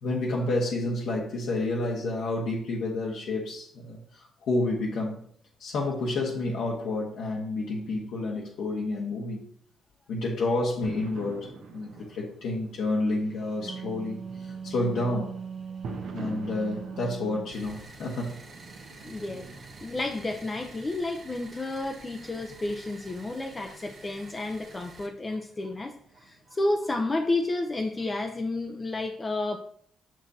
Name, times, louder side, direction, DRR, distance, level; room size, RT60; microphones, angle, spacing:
voice 1, 0.0-5.2 5.6-9.4 10.1-15.3 16.1-18.4, left 2 dB, 75° left, -4 dB, 1.3 m, -30 dB
sound 1, 10.8-28.8, right 3 dB, 70° right, 1.1 m, -47 dB
Wind instrument woodwind instrument, 13.4-17.6, right 6 dB, 35° right, 0.9 m, -39 dB
sound 2, 17.5-25.1, right 3 dB, 55° right, 1.5 m, -49 dB
voice 2, 19.0-19.5 19.8-29.6, left 2 dB, 25° left, 4 dB, 0.6 m, -31 dB
6.1 x 6.0 x 2.7 m, 0.62 s
cardioid pair, 90°, 0 cm